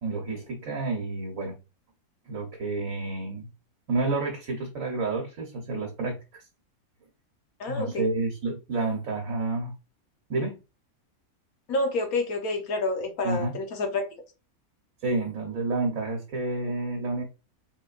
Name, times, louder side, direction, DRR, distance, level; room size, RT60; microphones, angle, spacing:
voice 1, 0.0-1.6 2.2-3.5 3.9-6.4 7.7-9.7 10.3-10.5 13.2-13.5 15.0-17.2, right 3 dB, 65° right, 1.4 m, -29 dB
voice 2, 7.6-8.1 11.7-14.1, left 2 dB, 75° left, 1.4 m, -28 dB
3.9 x 3.7 x 2.4 m
omnidirectional pair, 1.6 m